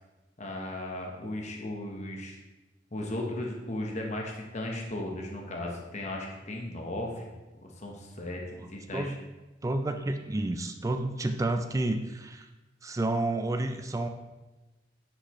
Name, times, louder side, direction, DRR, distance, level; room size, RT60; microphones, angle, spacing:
voice 1, 0.4-2.4 2.9-7.3 7.6-9.1, left 1 dB, 40° left, 0 dB, 1.0 m, -36 dB
voice 2, 8.6-9.2 9.6-12.5 12.8-14.1, right 2 dB, 20° right, 7 dB, 0.3 m, -30 dB
10.0 x 5.1 x 3.0 m, 1.1 s
head